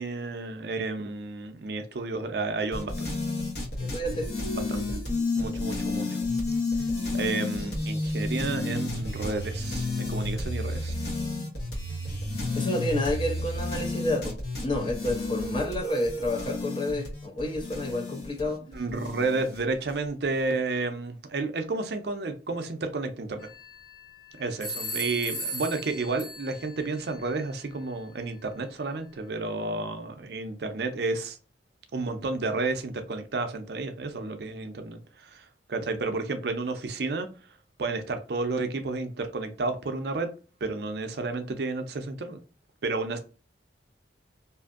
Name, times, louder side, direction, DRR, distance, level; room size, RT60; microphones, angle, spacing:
voice 1, 0.0-3.1 4.5-4.8 5.4-6.1 7.1-10.9 18.4-23.5 24.4-31.4 31.9-37.3 37.8-40.3 40.6-42.4 42.8-43.2, right 3 dB, 55° right, 0.5 m, -31 dB
sound 1, 2.7-19.9, left 2 dB, 55° left, 1.0 m, -31 dB
voice 2, 3.8-4.3 12.6-14.4 14.6-18.6, left 1 dB, 25° left, 0.5 m, -30 dB
sound 2, 23.4-24.1 24.6-26.8, right 1 dB, 90° left, 1.2 m, -36 dB
2.6 x 2.5 x 2.4 m
head